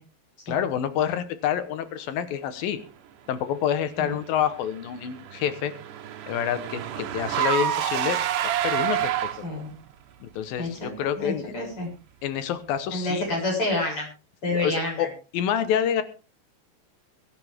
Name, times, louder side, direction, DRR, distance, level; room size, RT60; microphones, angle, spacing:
voice 1, 0.5-2.8 3.3-5.7 6.3-8.2 8.4-9.5 10.2-11.5 12.2-13.3 14.5-15.1 15.3-16.0, left 9 dB, 85° left, 12 dB, 3.0 m, -27 dB
Car / Engine, 4.6-9.7, right 11 dB, 70° right, 2.7 m, -28 dB
voice 2, 9.4-9.8 10.6-11.9 12.9-14.1 14.4-15.1, left 2 dB, 35° left, -1 dB, 8.2 m, -28 dB
23.5 x 10.5 x 3.6 m, 0.34 s
omnidirectional pair, 4.0 m